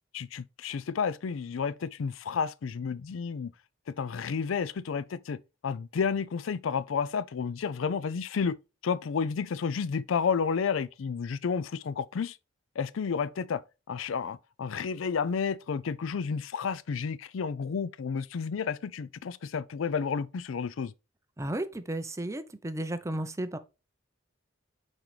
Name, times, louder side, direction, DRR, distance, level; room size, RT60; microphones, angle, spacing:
voice 1, 0.1-3.5 4.0-8.6 8.8-12.4 12.8-13.6 13.9-20.9, left 6 dB, 85° left, 0.4 m, -31 dB
voice 2, 21.4-23.6, right 1 dB, 15° right, 0.6 m, -33 dB
5.9 x 5.3 x 3.2 m
head